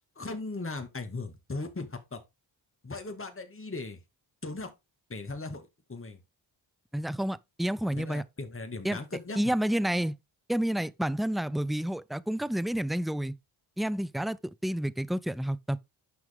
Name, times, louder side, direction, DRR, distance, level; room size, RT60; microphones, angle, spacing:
voice 1, 0.2-2.2 2.8-4.0 4.4-4.7 5.1-6.2 7.9-9.5, left 3 dB, 25° left, 2.1 m, -38 dB
voice 2, 6.9-8.2 8.8-9.0 9.4-10.2 10.5-13.3 13.8-15.8, right 1 dB, ahead, 0.4 m, -29 dB
9.5 x 5.9 x 3.6 m
supercardioid pair, 50°, 49 cm